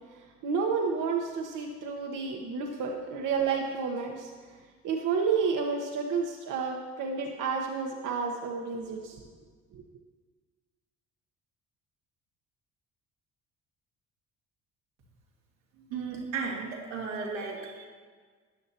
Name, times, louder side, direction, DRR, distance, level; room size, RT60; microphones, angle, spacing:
voice 1, 0.4-4.3 4.8-9.2 9.7-9.8, right 5 dB, 60° right, 1 dB, 1.2 m, -30 dB
voice 2, 15.9-17.9, right 5 dB, 90° right, -4 dB, 2.3 m, -35 dB
13.5 x 10.0 x 2.9 m, 1.5 s
hypercardioid pair, 60°, 35 cm